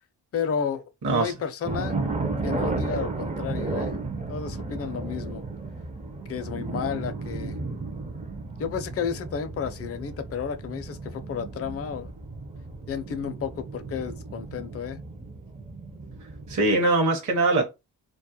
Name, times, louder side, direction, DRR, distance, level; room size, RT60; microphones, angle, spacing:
voice 1, 0.3-2.0 2.4-3.9 4.3-5.4 6.3-7.6 8.6-12.1 12.9-15.0, left 7 dB, 35° left, 0.5 m, -32 dB
sound 1, 1.6-16.7, right 3 dB, 20° right, 0.4 m, -34 dB
voice 2, 16.5-17.7, right 2 dB, 45° right, 0.8 m, -22 dB
2.3 x 2.0 x 2.7 m
cardioid pair, 65°, 42 cm